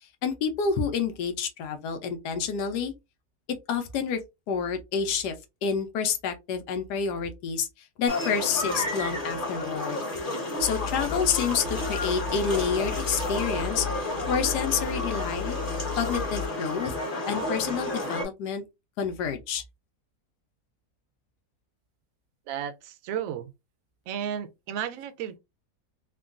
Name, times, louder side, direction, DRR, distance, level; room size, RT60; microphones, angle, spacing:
voice 1, 0.2-2.9 3.7-4.2 4.5-7.7 8.0-10.0 10.6-13.9 14.3-15.6 16.0-16.9 17.3-18.6 19.0-19.6, left 6 dB, 90° left, 1.2 m, -28 dB
sound 1, 8.1-18.2, left 2 dB, 35° left, 1.3 m, -31 dB
sound 2, 10.6-16.5, left 8 dB, 85° right, 1.3 m, -35 dB
voice 2, 22.5-23.5 24.1-25.4, right 9 dB, 70° right, 0.9 m, -33 dB
3.6 x 2.2 x 2.4 m
omnidirectional pair, 1.7 m